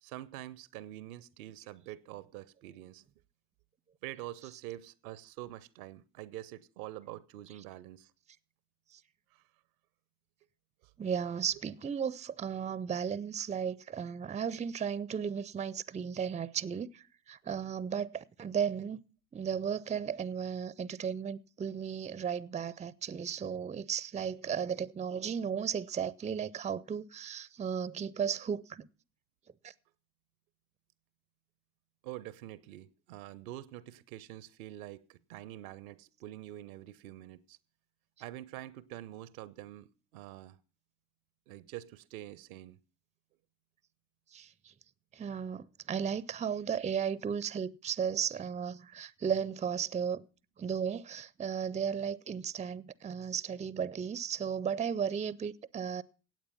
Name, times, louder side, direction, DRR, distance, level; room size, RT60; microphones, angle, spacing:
voice 1, 0.0-3.0 4.0-8.1 9.3-9.4 32.0-37.6 38.2-40.6 41.5-42.8, right 14 dB, 70° right, 0.7 m, -46 dB
voice 2, 11.0-19.0 19.3-28.9 29.6-29.7 44.3-44.5 45.1-50.2 50.6-56.0, right 7 dB, 15° right, 0.5 m, -35 dB
16.5 x 8.6 x 5.6 m
figure-of-eight pair, 45°, 44 cm